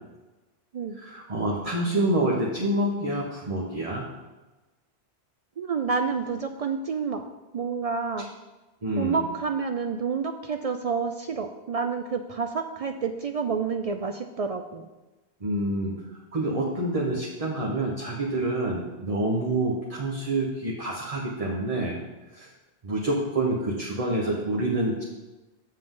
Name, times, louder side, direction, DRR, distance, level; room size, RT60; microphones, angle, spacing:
voice 1, 1.0-4.0 8.8-9.2 15.4-15.9 16.3-22.0 22.3-22.5 22.8-25.0, right 1 dB, 35° right, -3 dB, 1.1 m, -27 dB
voice 2, 5.6-7.2 7.5-8.3 9.0-14.9, right 5 dB, 65° right, 7 dB, 0.3 m, -29 dB
7.6 x 7.5 x 3.7 m, 1.1 s
omnidirectional pair, 1.1 m